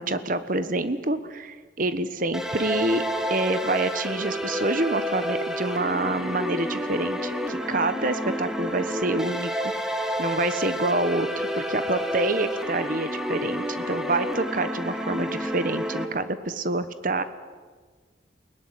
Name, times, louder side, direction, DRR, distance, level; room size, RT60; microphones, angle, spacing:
voice 1, 0.0-3.0 3.3-9.7 10.0-17.2, right 2 dB, 45° right, 12 dB, 1.4 m, -27 dB
sound 1, 2.3-16.1, equal, 5° right, 2.2 m, -30 dB
29.5 x 19.0 x 10.0 m, 1.5 s
head